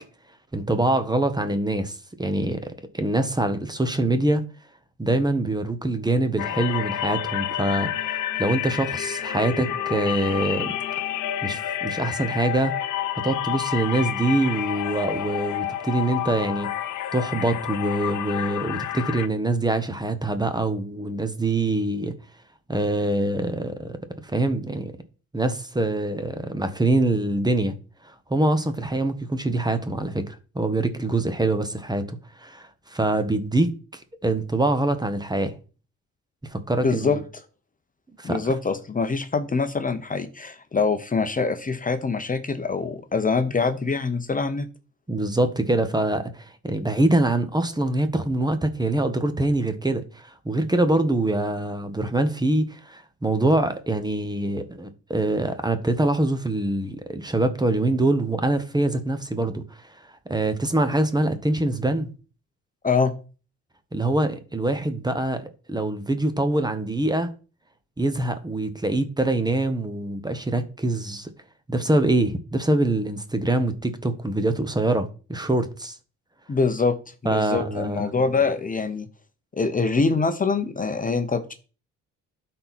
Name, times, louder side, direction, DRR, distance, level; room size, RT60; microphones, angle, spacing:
voice 1, 0.5-4.4 5.0-10.7 11.4-12.7 13.1-16.7 17.1-22.1 22.7-24.9 25.3-27.8 28.0-35.5 36.5-37.2 38.2-38.4 45.1-62.1 63.9-67.3 68.0-71.3 71.7-75.9 77.2-78.0, right 2 dB, 15° right, 1.2 m, -24 dB
sound 1, 6.4-19.3, left 11 dB, 80° left, 0.9 m, -29 dB
voice 2, 36.8-37.2 38.2-44.7 62.8-63.1 76.5-77.0 77.2-79.1 79.5-81.5, left 4 dB, 25° left, 1.0 m, -24 dB
12.0 x 4.4 x 4.3 m
cardioid pair, 90°, 30 cm